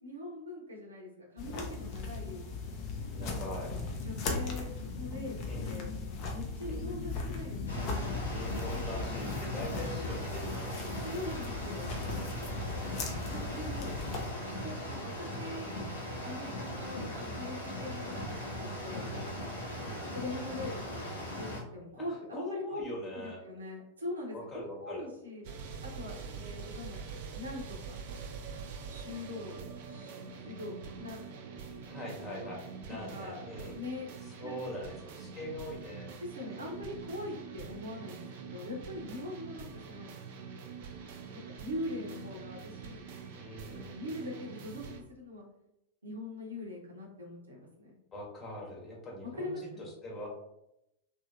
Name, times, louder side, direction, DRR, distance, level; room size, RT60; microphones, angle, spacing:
voice 1, 0.0-2.4 3.2-3.6 4.0-5.4 5.6-5.9 6.3-7.6 11.0-11.9 13.3-14.0 14.6-15.8 16.2-19.3 20.1-21.1 21.4-22.8 23.1-25.4 25.8-27.0 27.3-28.0 28.9-31.3 32.2-32.6 32.9-33.4 33.7-34.1 34.4-34.9 36.2-40.1 41.3-43.0 43.7-44.8 45.1-45.5 46.0-47.9 49.2-49.8, left 2 dB, 75° right, -1 dB, 0.8 m, -42 dB
sound 1, 1.4-14.3, left 3 dB, 40° left, 0.6 m, -38 dB
voice 2, 3.1-3.7 5.5-5.7 6.7-6.9 8.3-10.8 12.7-13.1 14.8-15.1 18.9-19.3 19.8-20.1 22.3-23.4 24.3-25.1 26.2-26.5 31.9-33.8 34.2-36.1 36.4-36.7 43.4-43.9 48.1-50.3, left 1 dB, 25° left, -3 dB, 1.1 m, -42 dB
sound 2, 7.7-21.6, equal, 75° left, 0.8 m, -39 dB
sound 3, 25.4-45.0, right 6 dB, 50° right, 0.4 m, -45 dB
3.1 x 2.7 x 2.5 m, 0.84 s
figure-of-eight pair, 90°, 0 cm